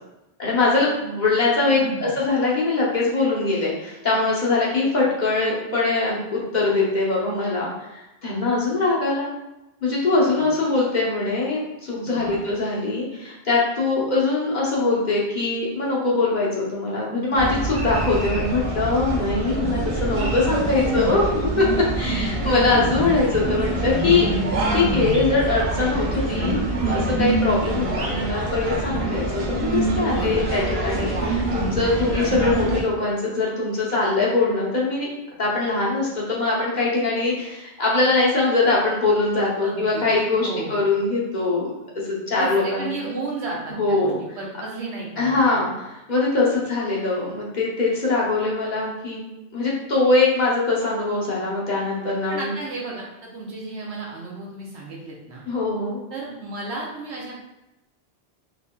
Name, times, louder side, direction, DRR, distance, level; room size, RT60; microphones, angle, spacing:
voice 1, 0.4-9.3 9.8-21.2 21.6-21.7 21.9-24.3 24.7-26.6 26.9-35.1 35.4-41.7 42.1-42.9 43.8-44.2 45.2-49.3 49.5-52.5 55.5-56.0, left 3 dB, 45° left, -5 dB, 1.0 m, -22 dB
voice 2, 1.6-2.2 10.3-10.5 12.0-12.4 30.1-30.6 39.6-40.0 40.4-40.8 42.4-45.3 45.6-45.7 52.3-55.4 56.1-57.4, right 3 dB, 90° right, -3 dB, 1.2 m, -33 dB
sound 1, 17.3-32.8, right 2 dB, 70° right, 1.0 m, -25 dB
3.9 x 2.9 x 2.3 m, 0.95 s
omnidirectional pair, 1.1 m